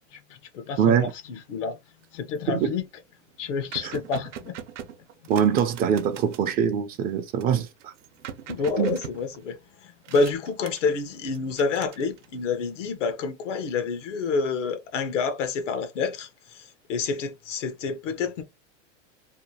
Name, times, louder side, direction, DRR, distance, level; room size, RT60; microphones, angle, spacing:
voice 1, 0.1-1.8 2.1-2.8 3.4-4.5 5.2-5.6 8.5-18.4, left 4 dB, 85° left, 0.9 m, -29 dB
voice 2, 0.8-1.1 2.5-2.7 3.8-3.9 5.3-7.9 8.8-9.0, right 8 dB, 25° right, 0.3 m, -23 dB
sound 1, 2.0-2.4 2.8-2.9 3.1-6.5 7.4-9.7 10.0-11.0 11.3-12.5, right 8 dB, 85° right, 0.8 m, -42 dB
2.8 x 2.3 x 2.7 m
supercardioid pair, 125°, 36 cm